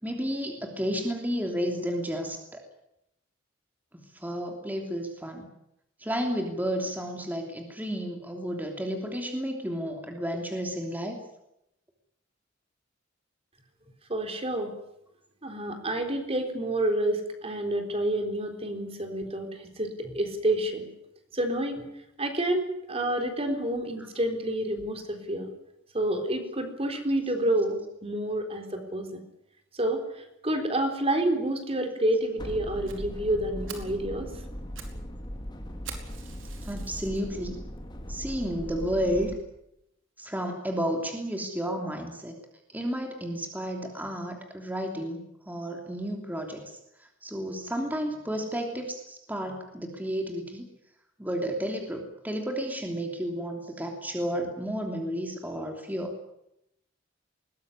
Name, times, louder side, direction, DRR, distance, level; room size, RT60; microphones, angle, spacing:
voice 1, 0.0-2.6 3.9-5.5 6.0-11.2 36.6-37.6 38.1-39.3 40.2-42.4 42.7-50.7 51.2-56.1, equal, 10° right, 2 dB, 3.1 m, -32 dB
voice 2, 14.1-14.7 15.4-20.9 21.3-21.8 22.2-25.5 25.9-29.2 29.7-34.3, right 1 dB, 30° right, 5 dB, 3.7 m, -29 dB
sound 1, 32.4-39.4, equal, 25° left, 3.1 m, -39 dB
Fire, 32.9-33.0 33.4-33.5 33.7-34.0 34.5-35.0 35.2-35.3 35.8-37.2 37.8-37.9 38.4-38.5 38.8-38.9 39.2-39.3, right 7 dB, 80° right, 4.7 m, -44 dB
21.5 x 20.0 x 9.8 m, 0.81 s
head